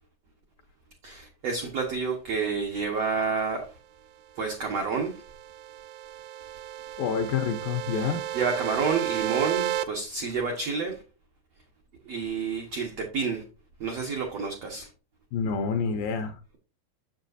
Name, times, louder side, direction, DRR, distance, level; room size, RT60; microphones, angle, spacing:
voice 1, 1.0-3.7 4.4-5.2 7.9-11.0 12.0-13.4 13.8-14.9, right 5 dB, 65° right, 1.6 m, -29 dB
sound 1, 4.9-9.9, right 11 dB, 80° right, 2.2 m, -33 dB
voice 2, 7.0-8.2 15.3-16.4, left 6 dB, 75° left, 2.2 m, -28 dB
7.3 x 6.9 x 2.6 m
omnidirectional pair, 4.6 m